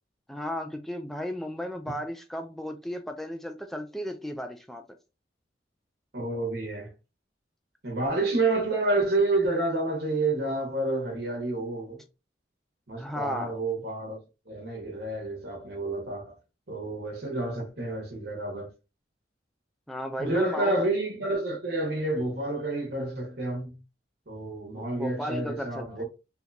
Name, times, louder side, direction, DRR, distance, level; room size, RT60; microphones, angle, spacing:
voice 1, 0.3-4.8 13.0-13.5 19.9-20.8 24.8-26.0, equal, ahead, 0.3 m, -35 dB
voice 2, 6.1-6.9 7.8-12.0 12.9-14.2 14.5-16.4 16.7-18.7 20.2-23.8 24.3-26.0, right 2 dB, 55° right, 1.0 m, -29 dB
3.5 x 2.8 x 2.6 m
head